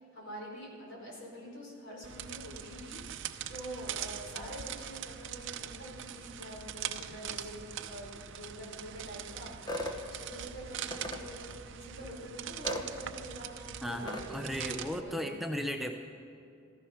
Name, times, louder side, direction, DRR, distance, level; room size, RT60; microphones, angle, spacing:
voice 1, 0.1-14.4 15.0-15.4, right 1 dB, 60° left, -2 dB, 4.5 m, -46 dB
sound 1, 2.0-15.0, right 9 dB, 60° right, 0.6 m, -42 dB
sound 2, 9.7-10.0 10.9-11.2 12.6-12.9 14.1-14.3, left 1 dB, 20° left, 1.1 m, -36 dB
voice 2, 13.8-15.9, equal, ahead, 3 dB, 0.5 m, -35 dB
15.0 x 14.0 x 5.8 m, 2.6 s
head